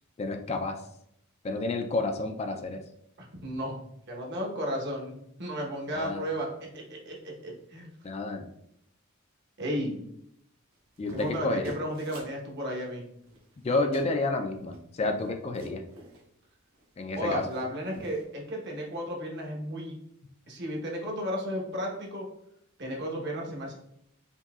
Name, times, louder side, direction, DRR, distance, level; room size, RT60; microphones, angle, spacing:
voice 1, 0.2-0.8 1.4-2.8 5.9-6.2 8.0-8.4 11.0-11.7 13.6-15.8 17.0-17.4, left 2 dB, 30° left, 5 dB, 0.3 m, -30 dB
voice 2, 3.4-3.8 4.1-5.1 5.4-7.9 9.6-10.0 11.1-13.0 17.1-20.0 20.5-22.2 22.8-23.7, equal, 55° right, -1 dB, 1.1 m, -34 dB
sound 1, 10.7-12.3 13.2-13.7 13.9-14.1 14.6-16.2 16.7-16.8 17.2-17.6 17.9-18.2, right 1 dB, 80° right, 1.1 m, -47 dB
5.4 x 2.9 x 2.3 m, 0.75 s
head